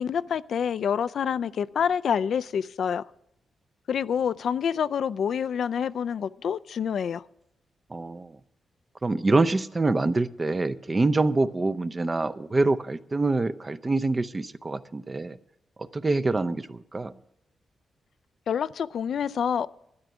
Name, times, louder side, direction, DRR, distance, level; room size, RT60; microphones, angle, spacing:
voice 1, 0.0-3.0 3.9-7.2 18.5-19.7, left 7 dB, 70° left, 0.4 m, -27 dB
voice 2, 7.9-8.4 9.0-15.4 15.8-17.1, right 3 dB, 25° right, 0.6 m, -25 dB
12.5 x 10.5 x 6.0 m
cardioid pair, 100°, 0 cm